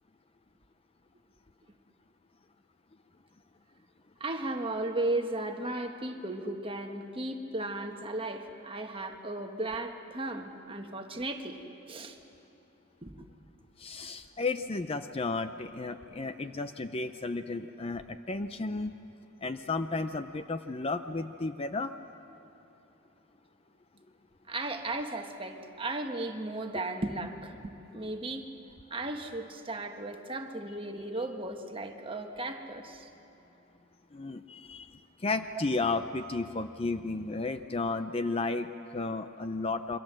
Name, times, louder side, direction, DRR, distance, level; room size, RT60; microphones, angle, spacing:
voice 1, 4.2-11.6 11.9-12.2 13.0-13.2 24.5-28.5 28.9-33.1 35.5-35.6, right 2 dB, 25° right, 4 dB, 1.4 m, -35 dB
voice 2, 13.8-18.9 19.4-21.9 34.1-40.0, left 3 dB, 25° left, 10 dB, 0.5 m, -33 dB
27.0 x 24.0 x 7.6 m, 3.0 s
head